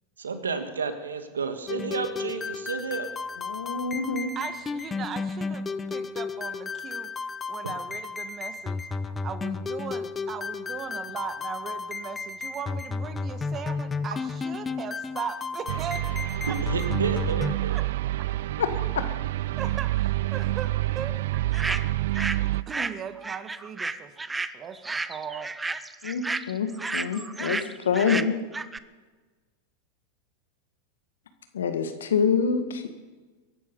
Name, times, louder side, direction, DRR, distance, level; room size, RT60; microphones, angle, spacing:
voice 1, 0.2-3.1 16.5-17.8, right 5 dB, 80° right, 9 dB, 1.7 m, -31 dB
sound 1, 1.7-17.5, left 4 dB, 20° left, 0.8 m, -33 dB
voice 2, 3.4-4.3 18.6-19.1 26.0-28.3 31.5-32.9, left 6 dB, 75° left, 8 dB, 1.8 m, -26 dB
voice 3, 4.3-16.1 16.4-16.6 17.7-17.8 18.2-18.3 19.6-21.2 22.7-24.1 24.5-25.5, right 7 dB, 30° right, 10 dB, 1.6 m, -38 dB
sound 2, 15.7-22.6, right 16 dB, 65° right, 0.4 m, -27 dB
sound 3, 21.5-22.4 22.7-28.8, right 3 dB, 10° right, 0.7 m, -32 dB
23.0 x 11.5 x 5.5 m, 1.3 s
figure-of-eight pair, 90°, 0 cm